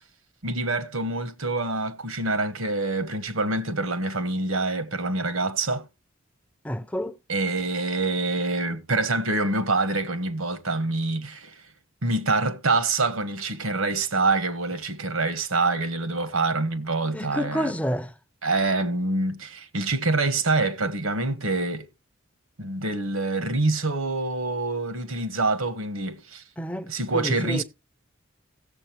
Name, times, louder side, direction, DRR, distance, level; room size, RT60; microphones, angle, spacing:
voice 1, 0.4-5.8 7.3-11.5 12.0-17.7 18.4-21.9 22.6-26.4 26.9-27.6, right 3 dB, 85° right, 1.3 m, -26 dB
voice 2, 6.6-7.1 17.1-18.1 26.6-27.6, equal, 5° left, 0.5 m, -29 dB
17.0 x 7.5 x 2.9 m
head